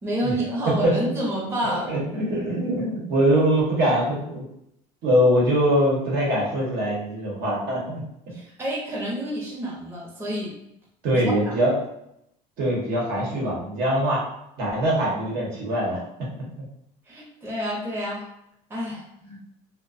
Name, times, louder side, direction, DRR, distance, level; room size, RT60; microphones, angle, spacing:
voice 1, 0.0-1.9 8.3-10.5 11.3-11.5 17.1-18.3 18.7-19.1, equal, 15° right, -5 dB, 0.6 m, -29 dB
voice 2, 1.9-4.4 5.0-8.0 8.3-8.4 11.0-11.7 12.6-14.2 14.6-16.0 19.3-19.4, equal, 70° right, -4 dB, 1.1 m, -22 dB
2.3 x 2.2 x 2.5 m, 0.79 s
cardioid pair, 125°, 16 cm